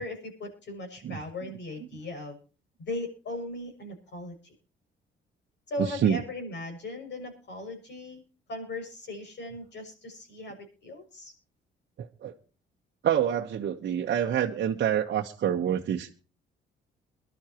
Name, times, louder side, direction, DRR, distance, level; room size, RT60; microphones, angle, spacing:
voice 1, 0.0-2.4 2.8-4.5 5.7-8.2 8.5-11.3, left 2 dB, 60° left, 5 dB, 6.5 m, -38 dB
voice 2, 5.8-6.2 12.0-12.3 13.0-16.1, right 9 dB, 60° right, 1 dB, 1.1 m, -27 dB
23.0 x 12.0 x 2.9 m, 0.36 s
cardioid pair, 90°, 20 cm